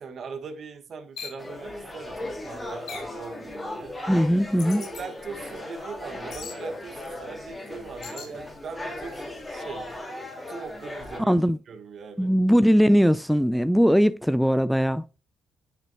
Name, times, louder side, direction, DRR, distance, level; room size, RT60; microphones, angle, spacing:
voice 1, 0.0-4.0 4.7-9.9 10.5-11.4 11.7-12.3, right 5 dB, 55° right, 1.3 m, -40 dB
sound 1, 1.2-1.4 2.9-3.2 4.6-5.0 6.3-6.6 8.0-8.3, left 6 dB, 65° left, 1.7 m, -39 dB
sound 2, 1.4-11.2, left 1 dB, 25° left, 2.4 m, -37 dB
voice 2, 4.1-4.8 11.3-11.6 12.2-15.0, equal, ahead, 0.4 m, -20 dB
8.4 x 6.0 x 2.7 m
hypercardioid pair, 55°, 0 cm